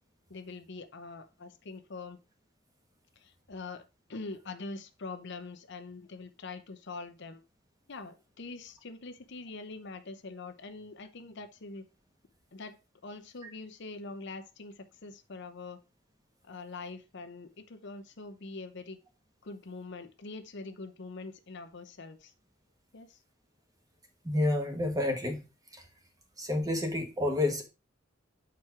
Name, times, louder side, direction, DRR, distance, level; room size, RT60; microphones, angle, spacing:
voice 1, 0.3-2.2 3.2-3.8 4.1-7.4 7.9-11.8 12.5-12.8 13.0-15.8 16.5-19.0 19.4-22.3 22.9-23.2, left 3 dB, 60° left, 0.8 m, -44 dB
voice 2, 24.2-25.4 26.4-27.6, left 1 dB, 20° right, 1.3 m, -29 dB
6.1 x 4.6 x 4.9 m
head